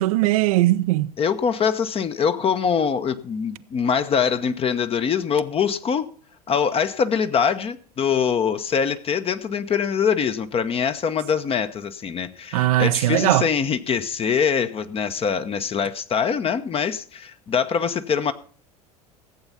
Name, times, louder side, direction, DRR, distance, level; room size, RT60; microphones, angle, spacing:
voice 1, 0.0-1.1 12.5-13.4, right 16 dB, 60° right, 0.7 m, -19 dB
voice 2, 1.2-6.1 6.5-18.3, left 7 dB, 30° left, 0.9 m, -23 dB
14.5 x 8.1 x 5.7 m
figure-of-eight pair, 80°, 20 cm